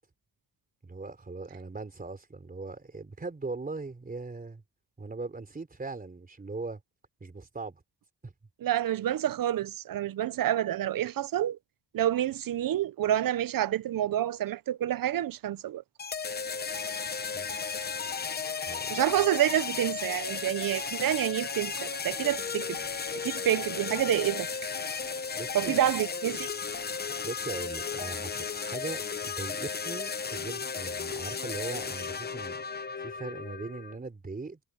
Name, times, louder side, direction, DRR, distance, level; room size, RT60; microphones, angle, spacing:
voice 1, 0.8-4.6 5.0-6.8 7.2-7.8 8.2-8.3 17.3-17.5 18.7-19.0 25.3-25.8 27.2-34.6, right 3 dB, 20° right, 3.9 m, -40 dB
voice 2, 8.6-11.6 11.9-15.8 18.9-22.8 23.2-24.5 25.5-26.5, right 12 dB, 55° right, 0.7 m, -28 dB
sound 1, 16.0-34.0, left 5 dB, 25° left, 0.8 m, -35 dB
wide cardioid pair, 155°, 40 cm